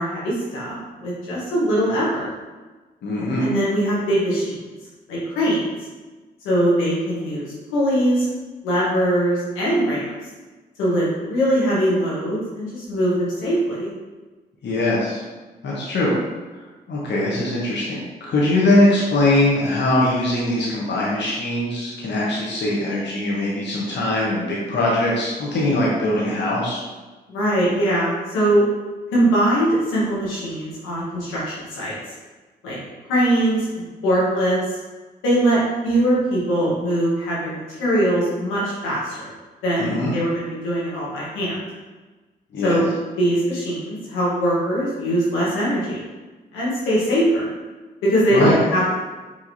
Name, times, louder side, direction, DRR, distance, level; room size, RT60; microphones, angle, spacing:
voice 1, 0.0-2.3 3.4-4.6 5.1-5.6 6.4-7.5 7.7-8.3 8.6-10.1 10.8-13.9 27.3-28.6 29.1-31.9 32.6-32.8 33.1-34.6 35.2-39.3 39.6-41.7 42.6-42.9 43.2-46.1 46.5-47.5 48.0-49.0, right 1 dB, 90° left, -7 dB, 1.2 m, -21 dB
voice 2, 3.0-3.5 14.6-15.2 15.6-16.1 16.5-26.8 39.8-40.1 42.5-42.8 48.3-48.6, left 1 dB, 65° left, -5 dB, 1.0 m, -21 dB
4.8 x 2.9 x 2.7 m, 1.2 s
hypercardioid pair, 40°, 20 cm